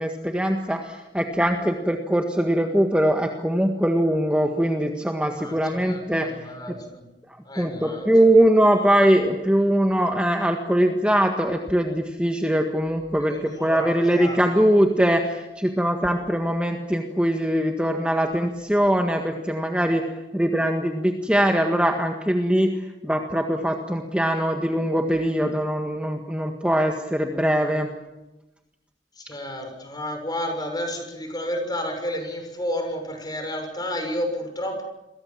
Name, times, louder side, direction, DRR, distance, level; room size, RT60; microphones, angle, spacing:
voice 1, 0.0-6.3 6.7-6.8 7.5-20.0 20.3-27.9, right 1 dB, 5° right, 3 dB, 1.7 m, -22 dB
voice 2, 5.4-7.0 7.4-8.1 13.2-14.4 29.2-34.8, left 1 dB, 25° left, 5 dB, 6.8 m, -31 dB
28.5 x 23.0 x 7.5 m, 0.99 s
head